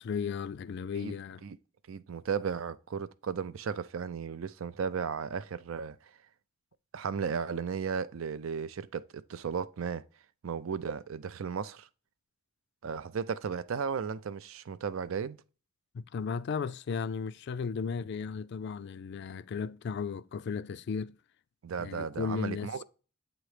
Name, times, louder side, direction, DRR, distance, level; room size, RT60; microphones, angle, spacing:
voice 1, 0.0-1.4 15.9-21.2 21.8-22.8, left 5 dB, 55° left, 0.4 m, -35 dB
voice 2, 1.9-6.1 6.9-10.0 10.4-11.9 12.8-15.4 21.6-22.8, right 6 dB, 80° right, 0.5 m, -35 dB
8.2 x 3.0 x 4.8 m
head